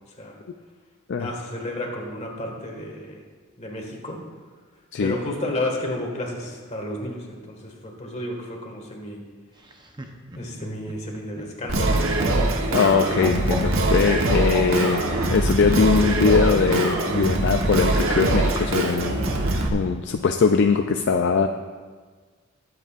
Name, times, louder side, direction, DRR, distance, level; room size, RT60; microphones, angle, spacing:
voice 1, 1.2-3.2 3.6-4.2 5.0-9.2 10.4-11.9, left 1 dB, 35° left, 0 dB, 1.7 m, -32 dB
Laughter, 9.6-15.3 16.5-17.2, right 1 dB, 20° right, 0.8 m, -35 dB
Singing, 11.7-19.7, right 2 dB, 70° right, 1.2 m, -23 dB
voice 2, 12.7-15.0 15.3-19.3 19.7-21.5, left 5 dB, 55° left, 6 dB, 0.4 m, -21 dB
21.0 x 8.0 x 2.5 m, 1.5 s
head